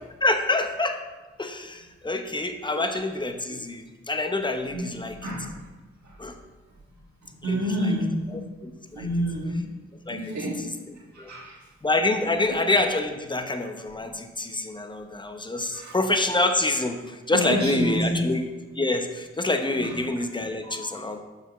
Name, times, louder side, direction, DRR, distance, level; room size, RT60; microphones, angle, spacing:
voice 1, 0.2-1.0 1.4-5.3 6.2-6.4 7.4-7.9 8.3-9.1 10.1-10.7 11.2-11.3 11.8-18.4 18.8-21.2, left 2 dB, 15° left, 6 dB, 0.7 m, -27 dB
voice 2, 4.7-5.5 6.0-6.1 7.4-8.4 8.9-9.7 10.1-10.7 11.1-11.6 12.5-12.6 15.7-15.9 17.3-18.3 19.8-19.9 20.6-20.9, equal, 70° right, -3 dB, 1.8 m, -28 dB
6.5 x 5.9 x 3.1 m, 1.2 s
cardioid pair, 40°, 29 cm